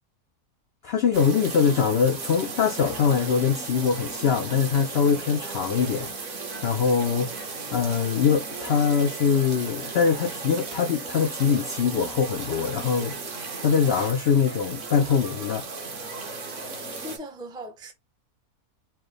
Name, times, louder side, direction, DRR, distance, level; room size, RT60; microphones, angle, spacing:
voice 1, 0.8-6.1 6.6-7.3 7.7-13.1 13.6-15.6, left 6 dB, 70° left, 0.6 m, -23 dB
sound 1, 1.1-17.2, right 3 dB, 55° right, 1.3 m, -36 dB
voice 2, 16.5-17.9, equal, 5° right, 0.5 m, -40 dB
4.5 x 2.1 x 3.2 m
omnidirectional pair, 1.6 m